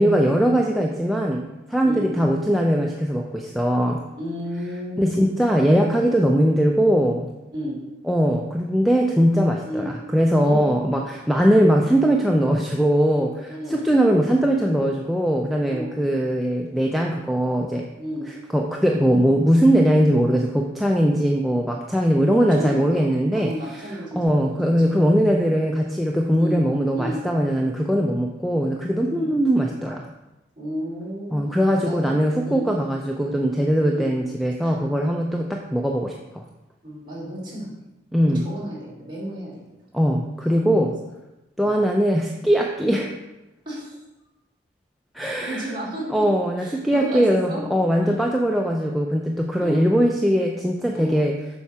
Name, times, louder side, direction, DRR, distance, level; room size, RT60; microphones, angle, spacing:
voice 1, 0.0-4.0 5.0-7.3 8.1-17.9 18.3-30.1 31.3-36.4 38.1-38.4 39.9-40.9 41.6-43.1 45.1-45.7 46.1-51.3, equal, ahead, 0 dB, 0.4 m, -20 dB
voice 2, 4.2-5.1 7.5-7.8 9.6-9.9 10.4-10.8 13.5-13.8 15.7-16.0 18.0-18.3 22.3-25.0 26.3-26.6 26.9-27.2 29.1-29.4 30.6-32.1 32.4-32.7 33.9-34.1 34.6-34.8 36.8-37.7 38.3-39.5 40.4-40.9 41.6-41.7 42.8-42.9 43.6-44.0 45.2-46.1 46.6-47.6 48.0-48.2 49.6-49.9 50.9-51.2, equal, 25° right, -7 dB, 3.0 m, -33 dB
7.1 x 5.7 x 4.8 m, 0.99 s
head